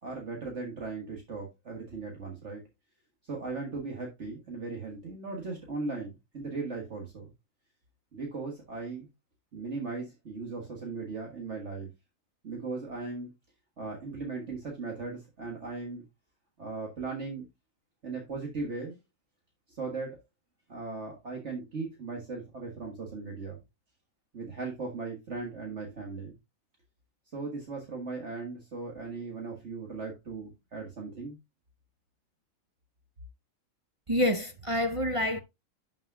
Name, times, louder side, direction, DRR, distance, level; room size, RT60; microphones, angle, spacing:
voice 1, 0.0-2.6 3.2-7.3 8.1-9.1 9.5-11.9 12.4-13.3 13.8-16.0 16.6-17.5 18.0-19.0 19.7-20.2 20.7-23.6 24.3-26.3 27.3-31.4, right 3 dB, 55° right, 2.0 m, -38 dB
voice 2, 34.1-35.4, left 1 dB, 35° right, 0.5 m, -27 dB
11.5 x 5.4 x 2.3 m
omnidirectional pair, 1.5 m